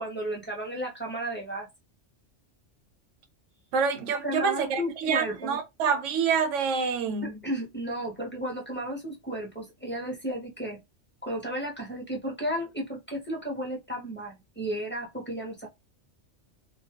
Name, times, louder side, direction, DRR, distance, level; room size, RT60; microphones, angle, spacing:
voice 1, 0.0-1.7 4.2-5.6 7.2-10.8 11.2-15.7, right 1 dB, 15° left, 0.5 m, -33 dB
voice 2, 3.7-7.4, right 6 dB, 85° right, 0.9 m, -27 dB
2.3 x 2.1 x 2.7 m
omnidirectional pair, 1.2 m